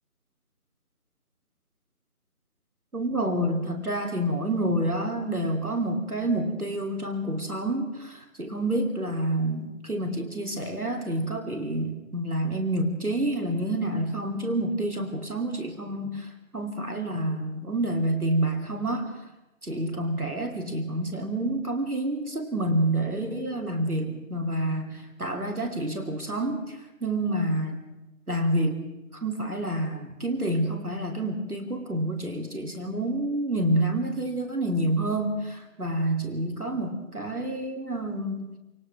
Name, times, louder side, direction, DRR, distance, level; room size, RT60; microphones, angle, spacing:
voice 1, 2.9-16.3 16.5-19.2 19.6-27.8 28.3-28.8 29.2-38.5, right 1 dB, 90° right, 3 dB, 3.3 m, -28 dB
28.5 x 27.0 x 3.6 m, 0.99 s
figure-of-eight pair, 160°, 43 cm